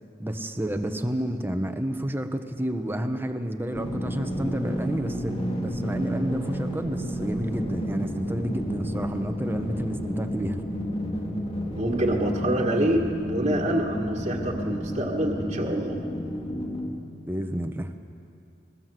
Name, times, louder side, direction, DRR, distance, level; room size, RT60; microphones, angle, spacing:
voice 1, 0.2-10.6 17.2-17.9, right 1 dB, 10° right, 6 dB, 1.2 m, -30 dB
sound 1, 3.7-16.9, equal, 30° left, 2.9 m, -31 dB
voice 2, 11.7-16.0, right 1 dB, 35° right, -1 dB, 1.8 m, -26 dB
22.5 x 21.0 x 7.7 m, 2.5 s
head